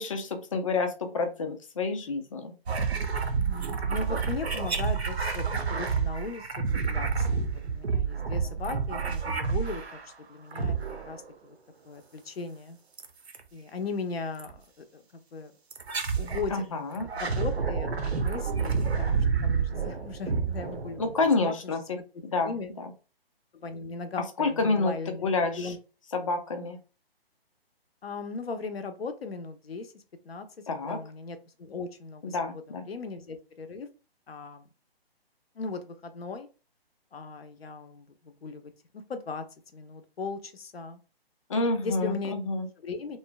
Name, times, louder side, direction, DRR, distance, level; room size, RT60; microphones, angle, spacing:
voice 1, 0.0-2.5 16.5-17.1 21.0-21.8 22.3-22.5 22.8-22.9 24.4-24.9 25.2-25.7 26.1-26.8 30.7-31.0 32.3-32.8 41.5-42.7, left 3 dB, 35° left, 6 dB, 0.5 m, -28 dB
sound 1, 2.7-10.1 10.5-11.3 13.0-13.4 14.4-14.6 15.7-16.5 16.9-21.3, right 5 dB, 85° right, 0.7 m, -29 dB
voice 2, 3.4-7.4 7.7-10.0 10.3-10.8 11.1-11.6 11.8-12.8 13.5-14.6 14.9-15.5 16.2-16.6 17.2-21.2 21.4-21.7 22.4-22.7 23.5-25.8 28.0-30.5 30.8-33.9 34.3-34.7 35.6-36.5 37.1-39.4 39.7-41.0 41.8-42.3 42.8-43.2, left 4 dB, 75° left, 8 dB, 0.7 m, -38 dB
3.0 x 2.1 x 2.3 m, 0.33 s
figure-of-eight pair, 140°, 31 cm